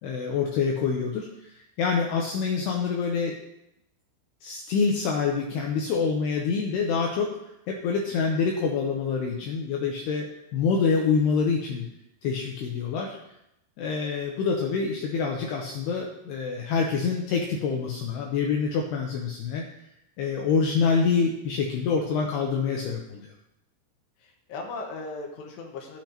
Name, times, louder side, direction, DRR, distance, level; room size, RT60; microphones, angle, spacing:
voice 1, 0.0-3.3 4.4-7.4 7.7-11.9 12.2-13.2 13.8-19.6 20.2-23.3, left 5 dB, 85° left, 0 dB, 2.3 m, -26 dB
voice 2, 24.2-26.0, left 3 dB, 65° left, 0 dB, 3.1 m, -38 dB
16.5 x 6.0 x 2.9 m, 0.83 s
omnidirectional pair, 5.7 m